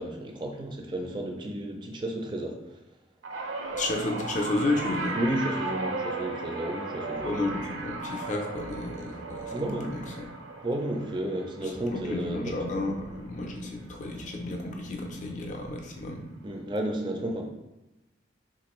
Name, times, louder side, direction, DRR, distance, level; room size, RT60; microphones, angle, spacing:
voice 1, 0.0-2.6 5.1-7.4 9.5-10.0 10.6-12.6 16.4-17.4, right 1 dB, 25° right, 2 dB, 0.4 m, -32 dB
sound 1, 3.2-13.7 14.0-14.4 15.5-15.6, right 3 dB, 80° right, 0.5 m, -36 dB
voice 2, 3.7-5.2 7.1-10.3 11.9-16.2, left 2 dB, 40° left, 2 dB, 0.4 m, -32 dB
3.8 x 2.5 x 3.0 m, 0.97 s
head